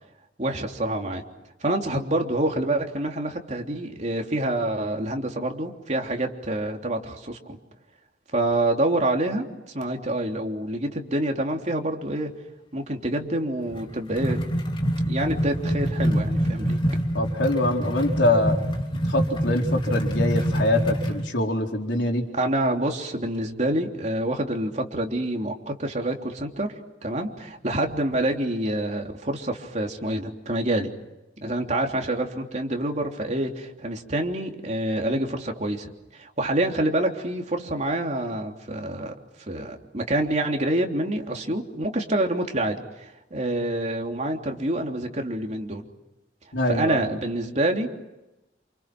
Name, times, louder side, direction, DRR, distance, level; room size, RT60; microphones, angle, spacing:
voice 1, 0.4-1.2 1.6-7.6 8.3-12.3 12.7-14.4 15.1-16.8 22.3-26.7 27.0-30.9 31.4-39.1 39.5-45.9 46.7-47.9, right 1 dB, 40° right, 2 dB, 3.3 m, -27 dB
sound 1, 13.7-21.2, equal, 30° left, 3.2 m, -26 dB
voice 2, 17.1-18.6 19.1-22.2 46.5-47.1, left 1 dB, 85° left, 1 dB, 4.3 m, -24 dB
29.0 x 28.5 x 6.2 m, 0.95 s
head